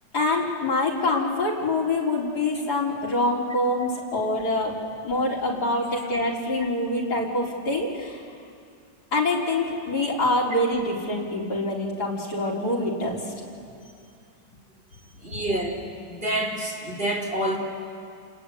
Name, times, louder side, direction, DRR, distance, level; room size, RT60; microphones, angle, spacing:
voice 1, 0.1-4.8 5.0-8.2 9.1-13.3, left 2 dB, 55° left, -3 dB, 4.7 m, -25 dB
voice 2, 15.2-15.8 16.1-17.6, right 1 dB, 30° right, 0 dB, 4.1 m, -28 dB
29.5 x 21.0 x 9.4 m, 2.4 s
omnidirectional pair, 2.0 m